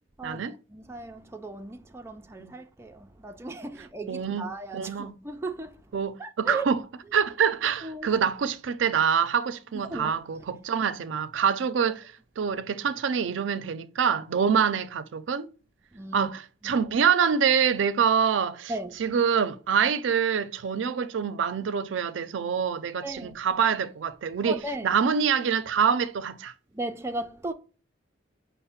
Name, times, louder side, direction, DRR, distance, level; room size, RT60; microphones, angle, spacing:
voice 1, 0.7-6.7 7.0-7.2 7.8-8.1 9.7-10.2 11.8-11.9 15.9-16.3 16.6-16.8 18.7-19.1 23.0-23.4 24.4-25.0 26.7-27.5, right 2 dB, 15° right, 0.3 m, -37 dB
voice 2, 4.1-4.5 4.7-5.1 5.9-6.8 7.1-12.0 12.4-15.5 16.1-18.7 19.0-23.0 23.4-24.6 24.8-26.5, right 7 dB, 90° right, 0.4 m, -25 dB
5.6 x 2.1 x 4.1 m
head